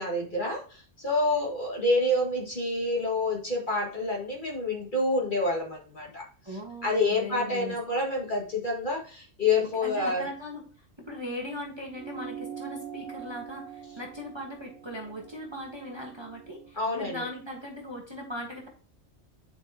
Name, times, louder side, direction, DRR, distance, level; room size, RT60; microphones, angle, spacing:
voice 1, 0.0-6.2 6.8-10.3 16.8-17.3, left 2 dB, 40° left, -2 dB, 2.1 m, -28 dB
voice 2, 6.4-7.8 9.8-10.6 11.1-18.7, equal, 20° right, 0 dB, 1.3 m, -39 dB
sound 1, 11.9-16.7, right 8 dB, 75° right, 1.6 m, -43 dB
9.5 x 5.0 x 2.9 m, 0.40 s
omnidirectional pair, 1.3 m